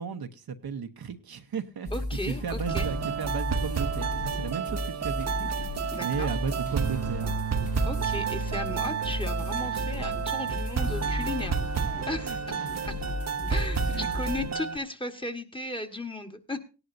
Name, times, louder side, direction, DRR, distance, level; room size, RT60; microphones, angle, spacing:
voice 1, 0.0-1.9 2.2-7.8 9.6-10.5 12.2-12.9 13.8-14.1 14.4-14.6, right 6 dB, 70° right, 1.0 m, -36 dB
sound 1, 1.9-14.5, left 2 dB, 80° left, 7.4 m, -35 dB
voice 2, 1.9-2.9 5.9-6.3 7.8-11.8 12.1-12.4 12.9-13.0 13.5-16.6, left 2 dB, 15° left, 1.4 m, -35 dB
sound 2, 2.7-14.8, right 6 dB, 45° right, 0.8 m, -31 dB
17.0 x 11.0 x 2.7 m
cardioid pair, 55°, 39 cm